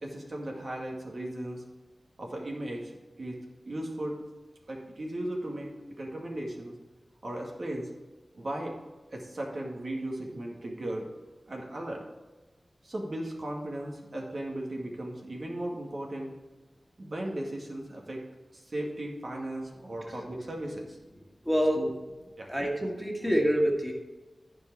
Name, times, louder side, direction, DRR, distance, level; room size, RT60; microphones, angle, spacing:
voice 1, 0.0-1.6 2.2-2.9 3.2-3.4 3.7-4.2 4.7-5.7 6.0-6.7 7.2-7.9 8.3-8.8 9.1-11.1 11.5-12.0 12.8-16.3 17.0-18.2 18.5-21.0 21.7-21.9 22.4-22.5 23.2-23.3, right 1 dB, 60° right, -1 dB, 2.1 m, -36 dB
voice 2, 21.4-21.8 22.5-23.9, equal, 5° right, -1 dB, 2.3 m, -26 dB
14.0 x 4.9 x 4.7 m, 1.2 s
wide cardioid pair, 55°, 0 cm